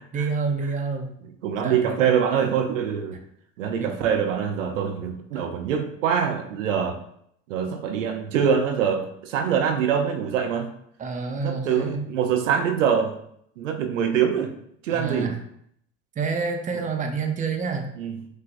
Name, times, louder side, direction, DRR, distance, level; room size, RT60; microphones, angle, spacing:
voice 1, 0.1-1.1 1.6-2.0 3.8-3.9 5.3-5.4 11.0-12.1 14.9-15.4 16.2-17.9, right 4 dB, 20° right, 5 dB, 0.6 m, -28 dB
voice 2, 1.4-3.2 3.6-7.0 7.5-10.7 11.4-13.2 13.6-14.5 14.8-15.3 18.0-18.2, right 7 dB, 85° right, 6 dB, 0.6 m, -24 dB
6.3 x 2.2 x 2.5 m, 0.70 s
hypercardioid pair, 80°, 37 cm